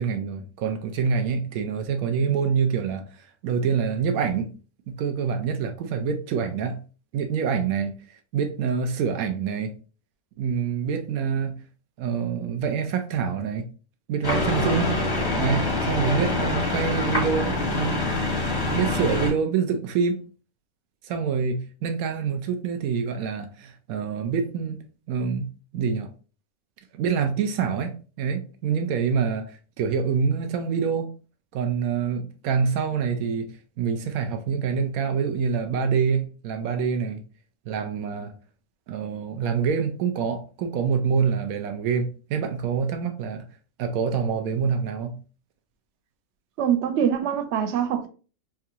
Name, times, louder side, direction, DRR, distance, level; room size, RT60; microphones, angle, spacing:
voice 1, 0.0-4.5 4.9-6.8 7.1-9.7 10.4-11.6 12.0-13.7 14.1-14.9 15.4-18.0 18.6-20.2 21.0-24.8 25.1-25.5 25.7-26.1 26.9-31.1 31.5-37.2 37.7-38.3 38.9-43.5 43.8-45.2, right 6 dB, 85° right, 1.0 m, -26 dB
sound 1, 14.2-19.3, left 2 dB, 25° left, 0.5 m, -25 dB
voice 2, 46.6-48.1, right 8 dB, 65° right, 0.8 m, -24 dB
4.4 x 2.4 x 2.8 m
omnidirectional pair, 1.5 m